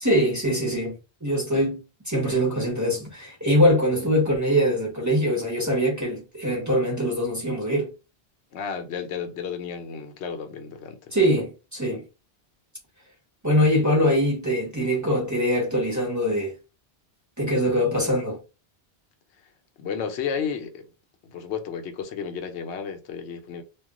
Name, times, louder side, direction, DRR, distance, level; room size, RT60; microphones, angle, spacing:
voice 1, 0.0-7.9 11.1-12.0 13.4-16.5 17.4-18.4, equal, 20° right, 0.7 m, -23 dB
voice 2, 8.5-11.2 19.8-20.9 21.2-23.6, left 6 dB, 85° left, 0.9 m, -32 dB
2.3 x 2.1 x 3.6 m
omnidirectional pair, 1.1 m